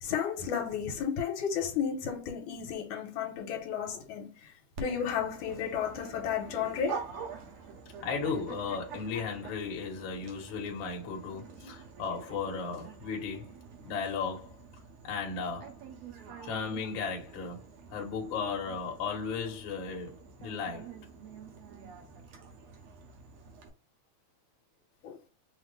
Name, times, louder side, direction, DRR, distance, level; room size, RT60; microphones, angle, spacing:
voice 1, 0.0-4.3 4.8-7.0 25.0-25.2, left 7 dB, 75° left, 2.0 m, -33 dB
Dog, 4.8-23.7, right 6 dB, 70° right, 1.8 m, -47 dB
voice 2, 8.0-13.5 13.8-14.6 15.0-15.7 16.4-20.9, left 5 dB, 60° left, 1.3 m, -35 dB
5.7 x 2.1 x 3.1 m
omnidirectional pair, 3.5 m